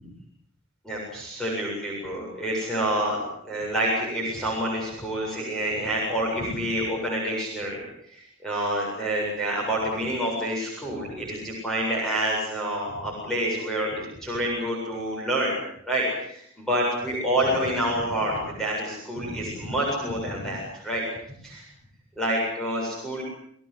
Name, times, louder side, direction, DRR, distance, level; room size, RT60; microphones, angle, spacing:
voice 1, 0.8-7.8 8.1-15.6 15.9-21.0 21.4-21.6 22.2-23.2, right 1 dB, ahead, -4 dB, 7.7 m, -28 dB
29.5 x 18.5 x 8.2 m, 0.70 s
head